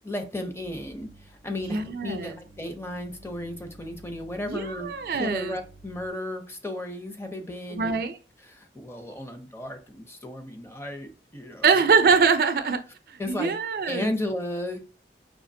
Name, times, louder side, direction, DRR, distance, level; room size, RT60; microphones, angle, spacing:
voice 1, 0.0-8.0 8.4-11.9 13.2-13.5 13.9-14.8, left 1 dB, 15° left, 5 dB, 0.5 m, -34 dB
sound 1, 0.6-6.1, right 2 dB, 40° left, 0.8 m, -51 dB
voice 2, 1.6-2.4 4.5-5.6 7.7-8.2 11.6-12.8 13.1-14.1, right 5 dB, 55° right, 10 dB, 0.4 m, -23 dB
4.9 x 2.8 x 2.6 m, 0.34 s
head